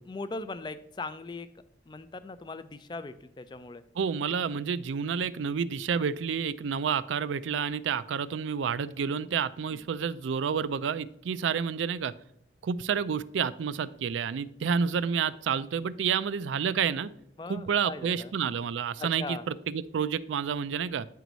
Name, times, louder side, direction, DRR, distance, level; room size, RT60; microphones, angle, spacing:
voice 1, 0.1-1.5 1.9-3.8 9.7-9.8 17.4-18.3 19.0-19.5, left 3 dB, 25° left, 13 dB, 0.3 m, -39 dB
voice 2, 4.0-12.1 12.6-17.1 17.5-21.1, right 7 dB, 85° right, 17 dB, 0.4 m, -29 dB
9.2 x 4.6 x 3.9 m, 0.73 s
head